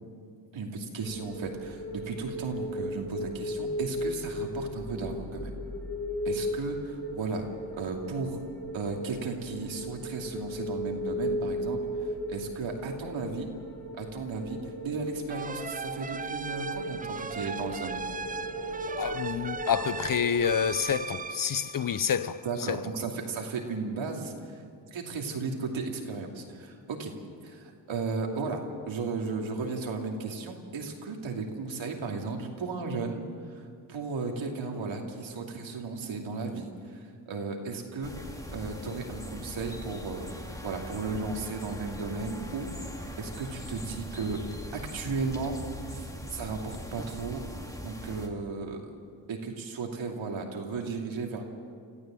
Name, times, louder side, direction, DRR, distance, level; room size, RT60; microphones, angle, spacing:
voice 1, 0.5-5.5 6.2-7.5 7.7-8.4 8.7-13.5 14.0-18.1 22.4-24.6 24.9-27.1 27.4-33.2 33.5-33.6 33.9-40.3 40.6-42.7 43.2-44.4 44.7-45.6 45.9-47.4 47.8-48.9 49.3-51.4, right 4 dB, 85° right, 2.8 m, -35 dB
sound 1, 1.0-20.9, equal, 30° left, 5.7 m, -37 dB
sound 2, 15.3-22.7, right 4 dB, 20° right, 0.4 m, -38 dB
voice 2, 19.0-22.8, left 8 dB, 45° left, 0.7 m, -28 dB
sound 3, 38.0-48.3, left 1 dB, 5° left, 2.3 m, -41 dB
26.5 x 14.5 x 7.7 m
cardioid pair, 70°, 45 cm